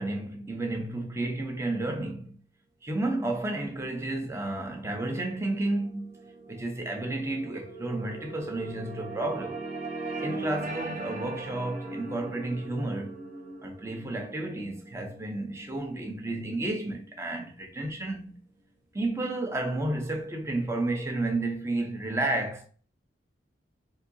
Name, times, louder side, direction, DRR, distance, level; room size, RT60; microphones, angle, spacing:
voice 1, 0.0-2.3 2.8-6.1 6.5-9.6 10.2-13.2 13.6-18.4 18.9-22.7, right 2 dB, 15° right, 0.6 m, -31 dB
sound 1, 4.7-17.1, right 2 dB, 45° right, 0.8 m, -40 dB
4.9 x 2.7 x 2.6 m
head